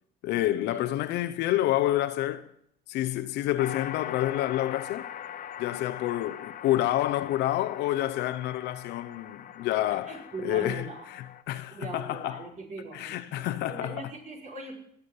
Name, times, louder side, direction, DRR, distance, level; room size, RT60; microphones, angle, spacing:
voice 1, 0.2-2.5 2.9-5.1 5.6-12.4 12.9-14.0, left 14 dB, 85° left, 0.8 m, -28 dB
sound 1, 3.6-11.4, left 10 dB, 50° left, 1.2 m, -42 dB
voice 2, 10.1-11.1 11.7-14.7, right 3 dB, 45° right, 6.0 m, -40 dB
19.5 x 7.2 x 9.6 m
cardioid pair, 110°, 17 cm